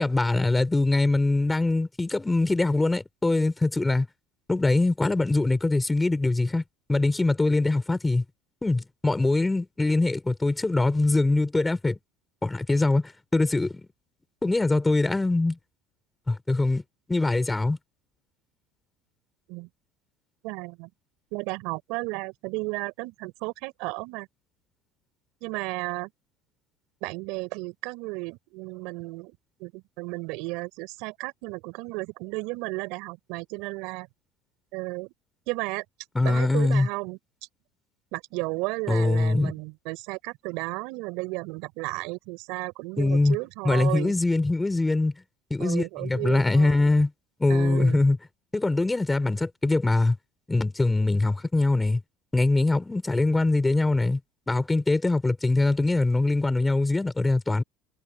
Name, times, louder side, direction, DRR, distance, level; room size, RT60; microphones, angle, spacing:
voice 1, 0.0-4.1 4.5-6.6 6.9-8.2 8.6-12.0 12.4-13.7 14.4-15.6 16.3-16.8 17.1-17.8 36.1-36.9 38.9-39.5 43.0-43.4 43.6-45.1 45.5-47.1 47.4-48.2 48.5-50.2 50.5-52.0 52.3-54.2 54.5-57.6, left 2 dB, 10° left, 6.3 m, -23 dB
voice 2, 20.4-20.9 21.3-24.3 25.4-26.1 27.0-34.1 34.7-35.1 35.5-35.8 36.2-37.2 38.1-44.1 45.6-46.8 47.5-48.0, right 25 dB, 70° right, 5.8 m, -33 dB
cardioid pair, 135°, 0 cm